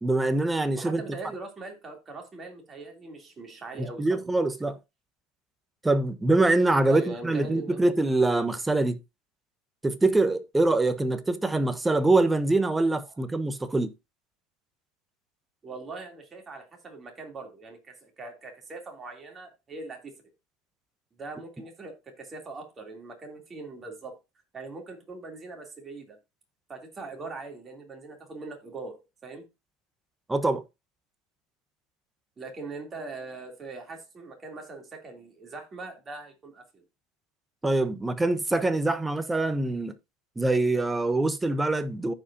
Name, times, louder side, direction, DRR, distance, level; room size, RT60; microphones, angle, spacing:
voice 1, 0.0-1.0 4.0-4.8 5.8-9.0 9.8-13.9 30.3-30.6 37.6-39.9 40.4-42.1, right 2 dB, 10° right, 1.1 m, -24 dB
voice 2, 0.8-4.1 6.9-7.8 15.6-20.1 21.2-24.2 24.5-26.2 26.7-29.5 32.4-36.8, right 3 dB, 30° right, 3.0 m, -41 dB
14.5 x 5.0 x 2.7 m
hypercardioid pair, 85°, 0 cm